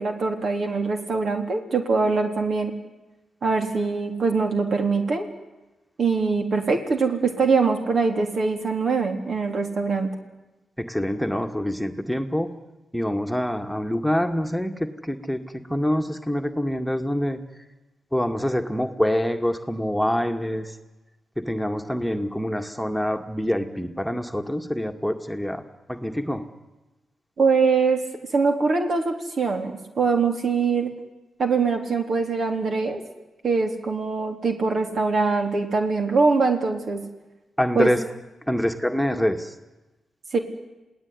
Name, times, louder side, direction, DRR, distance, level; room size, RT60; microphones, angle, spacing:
voice 1, 0.0-2.7 3.4-5.3 6.0-10.1 27.4-28.0 28.3-30.9 31.4-33.0 33.4-37.1 37.8-37.9 40.3-40.4, right 4 dB, 60° right, 4 dB, 3.8 m, -23 dB
voice 2, 10.8-12.5 12.9-15.4 15.7-17.4 18.1-20.8 21.4-25.6 25.9-26.5 37.6-38.0 38.5-39.5, equal, ahead, 5 dB, 2.2 m, -25 dB
28.0 x 17.5 x 9.9 m, 1.1 s
supercardioid pair, 50°, 0 cm